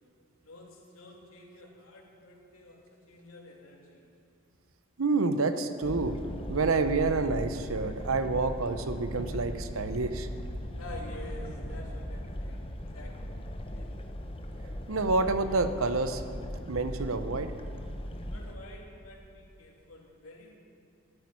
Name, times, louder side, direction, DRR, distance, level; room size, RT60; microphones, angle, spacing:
voice 1, 0.4-4.0 10.8-13.9 18.3-20.6, left 1 dB, 80° left, -2 dB, 3.0 m, -49 dB
voice 2, 5.0-6.2 6.5-10.3 14.9-16.2 16.7-17.5, right 3 dB, 70° right, 10 dB, 0.8 m, -28 dB
sound 1, 5.8-18.6, equal, 25° left, 0.9 m, -38 dB
13.5 x 9.0 x 9.7 m, 2.4 s
head